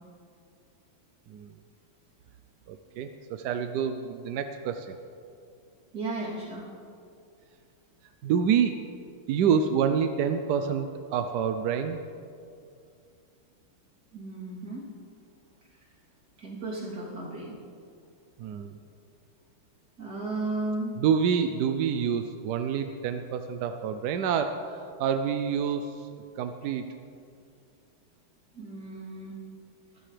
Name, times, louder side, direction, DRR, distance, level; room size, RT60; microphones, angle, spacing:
voice 1, 2.7-5.0 8.2-8.7 9.3-12.0 18.4-18.8 21.0-26.1 26.4-26.9, right 7 dB, 70° right, 7 dB, 1.0 m, -27 dB
voice 2, 5.9-6.7 14.1-14.9 16.4-17.5 20.0-21.0 28.6-29.4, right 2 dB, 45° right, -5 dB, 3.6 m, -34 dB
22.5 x 13.5 x 3.3 m, 2.4 s
omnidirectional pair, 2.2 m